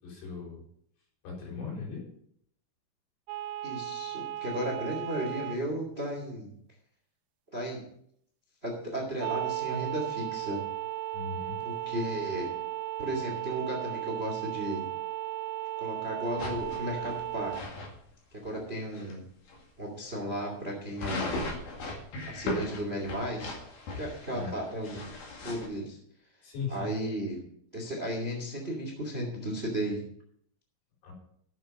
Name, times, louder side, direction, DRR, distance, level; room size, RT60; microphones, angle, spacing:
voice 1, 0.0-0.6 1.2-2.1 11.1-11.6 24.3-24.5 26.4-26.9 31.0-31.1, left 5 dB, 70° left, -2 dB, 6.8 m, -38 dB
sound 1, 3.3-5.6 9.2-17.6, right 14 dB, 90° right, 3.2 m, -35 dB
voice 2, 3.6-6.5 7.5-7.8 8.6-10.6 11.6-12.5 13.0-14.8 15.8-17.5 18.3-19.2 19.8-21.4 22.3-23.5 23.9-25.0 25.4-26.0 26.7-27.4 27.7-30.0, right 1 dB, 25° right, 1 dB, 1.3 m, -34 dB
sound 2, 16.4-17.9 18.4-18.5 18.9-19.1 19.5-19.6 21.0-25.7, left 2 dB, 50° left, 2.9 m, -37 dB
13.0 x 7.7 x 5.4 m, 0.68 s
omnidirectional pair, 5.7 m